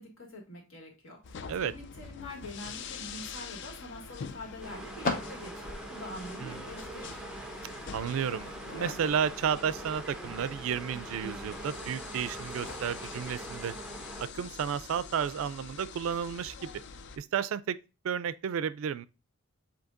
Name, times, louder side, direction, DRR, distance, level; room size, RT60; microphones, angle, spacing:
voice 1, 0.0-7.2, left 1 dB, 70° left, 1.9 m, -45 dB
sound 1, 1.2-17.2, left 6 dB, 55° left, 0.4 m, -45 dB
sound 2, 2.3-13.8, left 3 dB, 40° left, 0.8 m, -44 dB
sound 3, 4.6-14.3, right 1 dB, 5° right, 0.4 m, -43 dB
voice 2, 7.9-13.7 14.2-16.8 17.2-17.8 18.0-19.1, right 7 dB, 70° right, 0.3 m, -32 dB
7.8 x 2.8 x 2.4 m
head